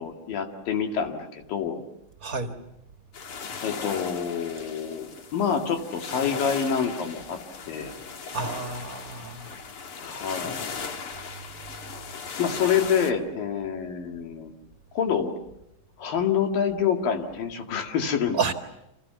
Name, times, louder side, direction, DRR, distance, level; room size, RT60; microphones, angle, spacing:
voice 1, 0.0-1.8 3.6-7.4 7.7-7.9 10.0-10.6 12.4-14.5 15.0-15.3 16.0-18.4, left 7 dB, 85° left, 3.8 m, -27 dB
voice 2, 2.2-2.5 8.3-9.5 18.3-18.5, right 5 dB, 35° right, 1.6 m, -30 dB
sound 1, 3.1-13.1, left 5 dB, 50° left, 2.1 m, -37 dB
29.5 x 27.0 x 7.0 m
omnidirectional pair, 3.9 m